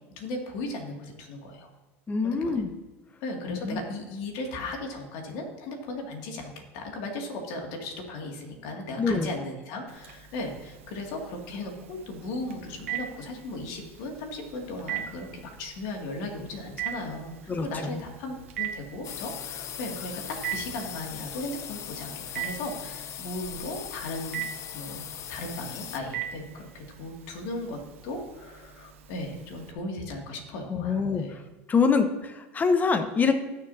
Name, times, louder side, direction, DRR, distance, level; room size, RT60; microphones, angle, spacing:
voice 1, 0.2-1.7 2.2-2.6 3.2-24.4 24.7-25.0 25.3-31.4, left 2 dB, 65° left, 1 dB, 2.4 m, -37 dB
voice 2, 2.1-2.7 3.5-3.8 9.0-9.3 17.5-18.0 30.7-31.2 31.7-33.3, left 5 dB, 25° left, 8 dB, 1.1 m, -25 dB
Telephone, 9.9-29.7, right 11 dB, 90° right, 1.2 m, -41 dB
sound 1, 19.0-26.0, left 10 dB, 45° left, 0.7 m, -39 dB
19.0 x 6.7 x 2.8 m, 1.2 s
supercardioid pair, 100°, 7 cm